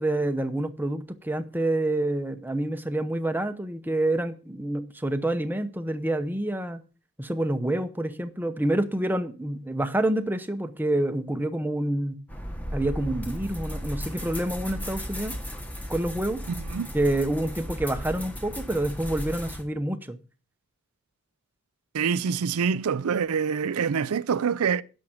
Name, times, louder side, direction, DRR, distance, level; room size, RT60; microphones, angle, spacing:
voice 1, 0.0-6.8 7.2-12.2 12.7-15.4 15.9-16.4 16.9-20.2, right 1 dB, 10° right, 0.8 m, -27 dB
sound 1, 12.3-19.6, equal, 5° left, 1.3 m, -35 dB
voice 2, 21.9-24.8, right 6 dB, 80° right, 0.5 m, -25 dB
10.5 x 6.4 x 5.6 m
head